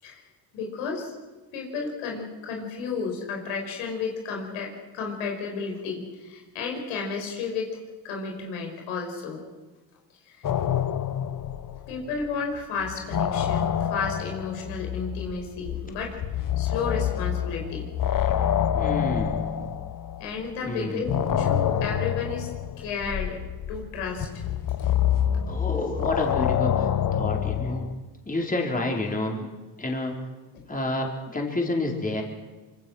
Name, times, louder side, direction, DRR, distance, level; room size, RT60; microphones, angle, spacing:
voice 1, 0.5-1.1 1.5-7.8 8.0-9.4 10.3-10.5 11.9-17.9 20.2-22.5 22.8-23.4 23.7-24.5 30.5-30.7, left 5 dB, 90° left, 1 dB, 5.4 m, -32 dB
sound 1, 10.4-12.3 12.6-20.5 21.1-27.9, left 9 dB, 45° left, 1.4 m, -27 dB
voice 2, 18.7-19.7 20.6-21.0 25.5-26.9 27.1-27.9 28.3-29.5 29.8-30.1 30.7-32.2, left 2 dB, 15° left, 0 dB, 4.5 m, -29 dB
25.5 x 24.0 x 6.5 m, 1.2 s
supercardioid pair, 85°, 46 cm